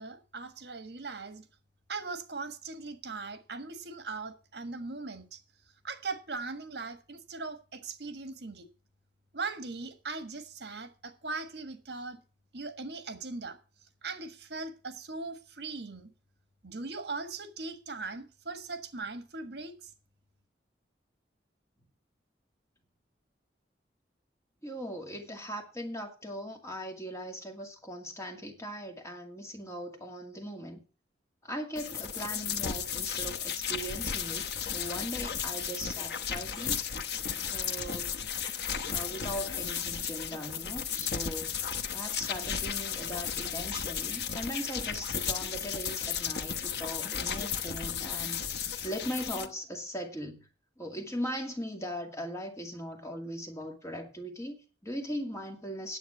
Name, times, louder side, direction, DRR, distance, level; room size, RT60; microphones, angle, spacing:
voice 1, 0.0-1.4 1.9-5.4 5.8-8.7 9.3-12.2 12.5-13.6 14.0-16.1 16.6-19.9, right 3 dB, 70° right, 1.6 m, -39 dB
voice 2, 24.6-30.8 31.4-36.9 37.5-38.2 38.9-41.6 41.9-48.4 48.8-50.4 50.8-56.0, equal, 15° left, 2.2 m, -39 dB
sound 1, 31.8-49.5, left 7 dB, 65° left, 1.0 m, -34 dB
10.0 x 7.9 x 6.1 m
head